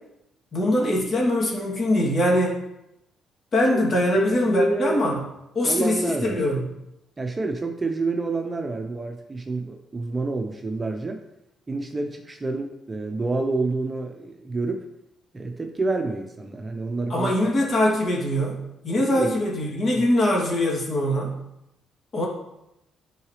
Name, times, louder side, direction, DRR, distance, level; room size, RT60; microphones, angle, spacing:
voice 1, 0.5-2.6 3.5-5.2 5.5-6.6 17.1-21.4 22.1-22.3, left 1 dB, 45° left, -3 dB, 2.6 m, -22 dB
voice 2, 4.1-5.0 5.6-6.5 7.2-11.2 11.7-14.9 15.3-17.3 19.0-19.3 19.9-20.1, right 2 dB, 25° right, 4 dB, 0.9 m, -28 dB
11.0 x 4.9 x 3.3 m, 0.85 s
cardioid pair, 90°, 0 cm